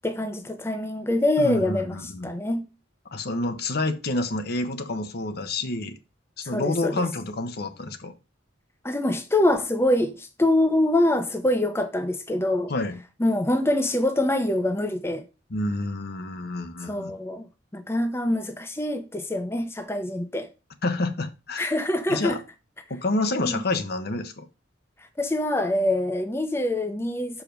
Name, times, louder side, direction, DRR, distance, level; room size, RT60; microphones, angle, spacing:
voice 1, 0.0-2.0 2.2-2.6 6.5-7.0 8.8-12.7 13.2-15.3 16.9-17.5 17.7-20.5 21.6-22.4 23.4-23.6 25.2-27.4, left 1 dB, 15° left, 0.7 m, -24 dB
voice 2, 1.4-2.3 3.1-6.0 6.4-8.1 12.7-13.0 15.5-17.2 20.8-21.8 22.1-22.4 22.9-24.5, left 2 dB, 55° left, 0.9 m, -28 dB
6.5 x 5.0 x 5.1 m
head